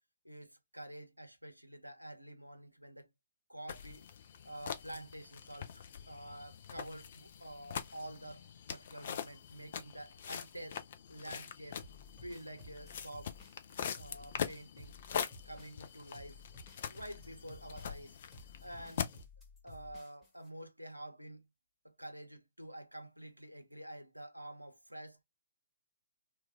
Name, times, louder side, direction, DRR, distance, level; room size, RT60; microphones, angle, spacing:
voice 1, 0.2-3.1 3.5-4.0 4.4-8.4 8.7-10.8 11.1-11.8 12.2-13.3 14.0-14.9 15.5-16.4 16.9-18.2 18.6-19.1 19.6-21.5 21.8-25.2, right 1 dB, 90° right, 0.6 m, -48 dB
sound 1, 3.7-19.2, left 8 dB, 45° left, 0.5 m, -43 dB
sound 2, 11.8-20.5, left 2 dB, 5° left, 1.2 m, -56 dB
3.0 x 2.3 x 2.4 m
figure-of-eight pair, 125°, 0 cm